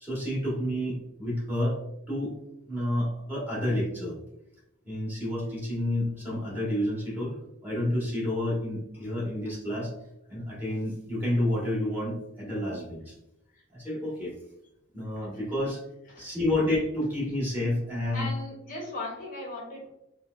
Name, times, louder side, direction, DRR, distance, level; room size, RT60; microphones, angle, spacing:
voice 1, 0.0-1.8 2.1-2.3 2.7-4.2 4.8-7.3 7.6-9.9 10.3-13.1 13.7-14.3 14.9-15.8 16.2-18.3, left 1 dB, 10° right, -7 dB, 1.4 m, -29 dB
voice 2, 18.1-19.9, left 2 dB, 45° left, -1 dB, 0.7 m, -37 dB
4.5 x 2.1 x 2.4 m, 0.84 s
head